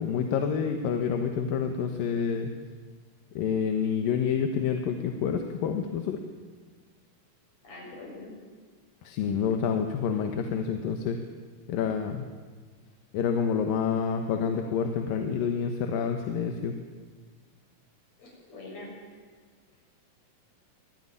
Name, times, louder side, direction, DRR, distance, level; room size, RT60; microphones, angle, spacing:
voice 1, 0.0-2.5 3.4-6.2 9.0-11.2 11.7-12.2 13.1-16.7, left 7 dB, 80° left, 5 dB, 3.0 m, -28 dB
voice 2, 7.6-8.4 18.2-18.9, left 2 dB, 50° left, -2 dB, 8.6 m, -43 dB
25.5 x 18.0 x 9.8 m, 1.5 s
omnidirectional pair, 4.0 m